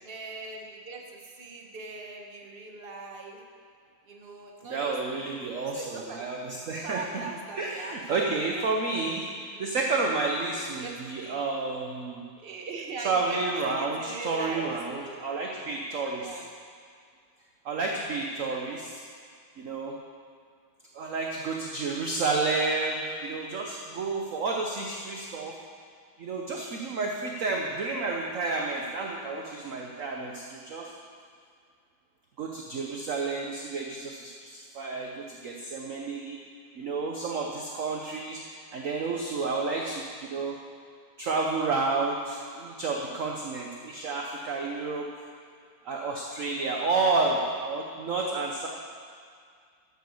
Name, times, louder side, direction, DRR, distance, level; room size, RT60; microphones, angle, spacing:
voice 1, 0.0-3.4 4.1-6.3 6.8-8.0 8.9-9.0 9.5-9.8 10.4-10.5 10.8-11.0 11.2-11.4 12.4-13.4 13.7-15.2 16.2-16.5, right 4 dB, 35° right, 1 dB, 1.1 m, -40 dB
voice 2, 4.6-7.3 7.6-9.3 9.6-12.2 13.0-16.3 17.6-19.0 19.6-20.0 20.9-25.6 26.2-30.9 32.4-36.4 36.8-40.6 41.2-45.1 45.8-48.7, right 3 dB, 55° right, 0 dB, 1.0 m, -30 dB
11.5 x 8.1 x 7.1 m, 2.1 s
omnidirectional pair, 2.3 m